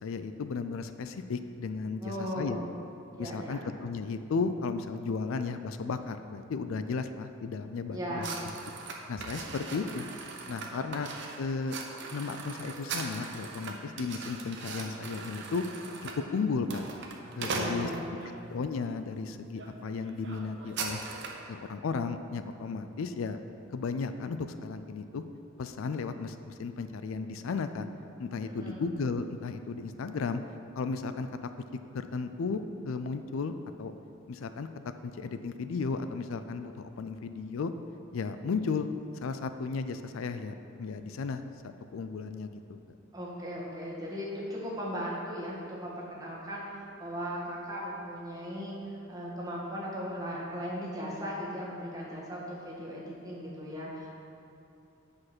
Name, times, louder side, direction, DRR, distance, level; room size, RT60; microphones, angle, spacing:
voice 1, 0.0-2.6 3.2-8.3 9.1-10.1 10.5-11.1 11.4-11.8 12.1-15.7 16.0-16.8 17.4-18.2 18.5-21.0 21.5-23.4 23.7-25.2 25.6-27.9 28.2-30.4 30.7-31.3 31.9-33.9 34.3-34.7 35.0-37.7 38.1-38.9 39.2-43.0, left 4 dB, 70° left, 10 dB, 0.4 m, -34 dB
voice 2, 2.0-2.7 3.1-3.6 7.9-8.4 9.5-9.6 10.5-10.8 17.4-18.3 28.4-28.8 43.1-48.7 49.1-54.1, equal, 20° right, -6 dB, 1.7 m, -37 dB
sound 1, 8.2-18.4 19.0-19.2 19.5-19.7 20.0-21.5, right 4 dB, 60° right, 0.9 m, -40 dB
8.4 x 5.1 x 6.0 m, 2.7 s
head